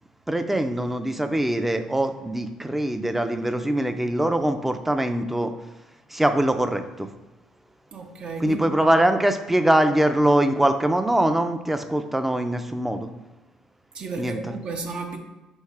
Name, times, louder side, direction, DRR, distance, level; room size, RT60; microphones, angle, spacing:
voice 1, 0.3-5.5 6.1-7.1 8.4-13.1 14.2-14.4, right 1 dB, 10° right, 8 dB, 0.4 m, -22 dB
voice 2, 7.9-9.2 13.9-15.2, right 4 dB, 50° right, 3 dB, 0.6 m, -34 dB
3.9 x 3.1 x 3.6 m, 1.1 s
hypercardioid pair, 65°, 2 cm